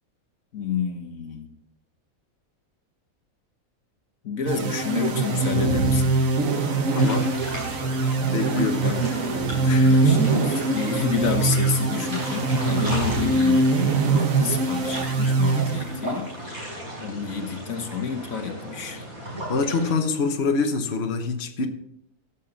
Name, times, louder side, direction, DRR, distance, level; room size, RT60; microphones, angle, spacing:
voice 1, 0.5-1.5 4.2-6.2 8.8-9.0 9.8-16.3 16.5-16.7 17.0-19.0, left 6 dB, 70° left, 5 dB, 1.7 m, -29 dB
sound 1, 4.5-16.2, right 3 dB, 70° right, 1.6 m, -22 dB
voice 2, 6.9-7.3 8.3-9.1 9.6-10.1 19.5-21.7, left 4 dB, 50° left, 4 dB, 1.2 m, -26 dB
sound 2, 7.0-19.9, right 1 dB, 55° right, 6.3 m, -36 dB
17.0 x 7.4 x 4.0 m, 0.76 s
omnidirectional pair, 1.5 m